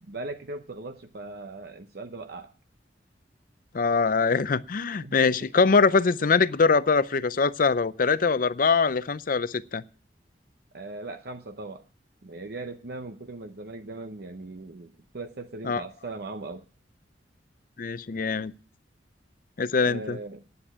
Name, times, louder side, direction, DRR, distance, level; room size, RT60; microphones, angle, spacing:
voice 1, 0.0-2.5 5.0-5.5 10.7-11.8 12.2-16.6 19.8-20.4, right 2 dB, 60° right, 0.8 m, -39 dB
voice 2, 3.7-9.8 15.6-15.8 17.8-18.5 19.6-20.2, left 4 dB, 50° left, 0.5 m, -23 dB
9.6 x 8.6 x 8.7 m
head